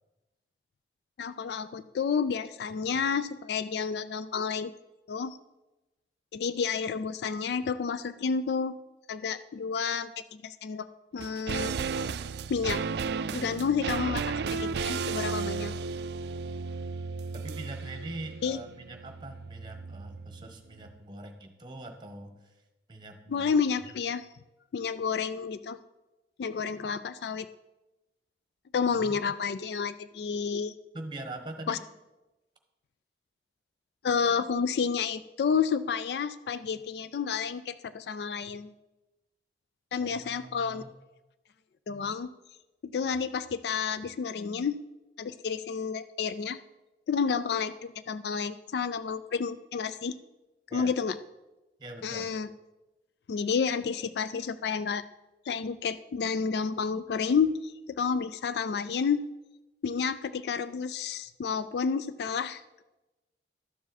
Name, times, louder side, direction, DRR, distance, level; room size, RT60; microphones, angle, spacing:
voice 1, 1.2-4.7 5.1-5.4 6.3-8.8 9.1-10.9 11.1-12.1 12.5-12.8 13.3-15.7 18.4-18.6 23.3-24.3 24.7-25.8 26.4-27.5 28.7-30.7 31.7-31.8 34.0-38.7 39.9-40.8 41.9-42.3 42.8-44.8 45.2-46.6 47.1-50.1 50.7-51.2 52.0-52.5 53.3-55.0 55.5-59.2 59.8-62.8, left 6 dB, 70° left, 14 dB, 0.3 m, -30 dB
sound 1, 11.2-20.6 20.8-20.9, right 5 dB, 70° right, 0.3 m, -34 dB
voice 2, 17.3-22.6 22.9-23.5 29.0-29.2 30.9-31.8 40.0-40.9 50.7-50.9 51.8-52.3, right 2 dB, 25° right, 5 dB, 1.1 m, -43 dB
12.5 x 7.1 x 4.1 m, 1.0 s
head